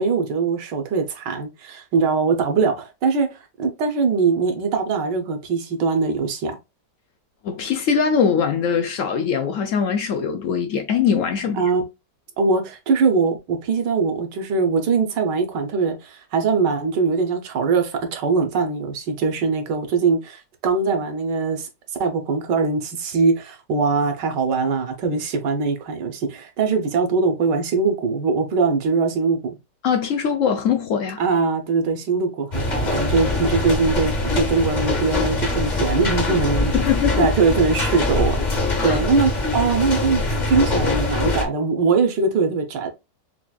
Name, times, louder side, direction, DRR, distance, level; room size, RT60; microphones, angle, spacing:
voice 1, 0.0-3.3 3.6-6.6 11.6-11.8 12.4-21.7 22.0-29.6 31.2-36.8 37.2-38.4 38.8-42.9, right 4 dB, 70° right, 1.5 m, -21 dB
voice 2, 7.4-11.6 29.8-31.2 36.7-37.3 38.8-39.0, left 7 dB, 75° left, 0.7 m, -22 dB
sound 1, 32.5-41.4, left 2 dB, 35° left, 0.7 m, -23 dB
5.8 x 2.5 x 2.3 m
omnidirectional pair, 2.0 m